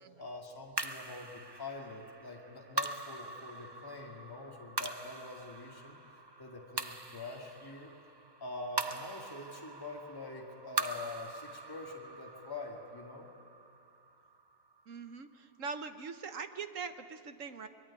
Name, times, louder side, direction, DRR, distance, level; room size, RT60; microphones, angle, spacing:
voice 1, 0.2-6.0 6.4-7.9 8.4-13.3, left 3 dB, 15° left, 0 dB, 2.2 m, -45 dB
sound 1, 0.8-15.3, right 3 dB, 30° right, 0.5 m, -42 dB
voice 2, 14.9-17.7, right 5 dB, 55° right, 9 dB, 1.2 m, -42 dB
23.5 x 22.5 x 9.9 m, 2.3 s
omnidirectional pair, 1.8 m